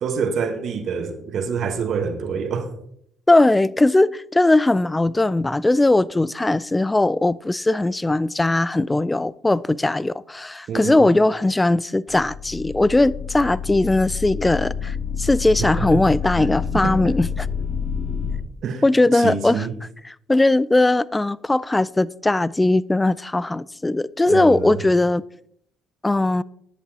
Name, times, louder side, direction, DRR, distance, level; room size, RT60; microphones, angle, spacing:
voice 1, 0.0-2.7 10.7-11.1 15.8-16.0 16.4-16.5 16.8-17.1 18.6-18.8 19.1-19.7 24.3-24.8, right 6 dB, 60° right, 1.1 m, -26 dB
voice 2, 3.3-17.5 18.8-19.7 20.0-25.2 26.0-26.4, left 2 dB, 15° left, 0.3 m, -19 dB
sound 1, 12.1-18.4, left 7 dB, 55° left, 2.3 m, -28 dB
10.5 x 8.1 x 2.8 m
hypercardioid pair, 55°, 0 cm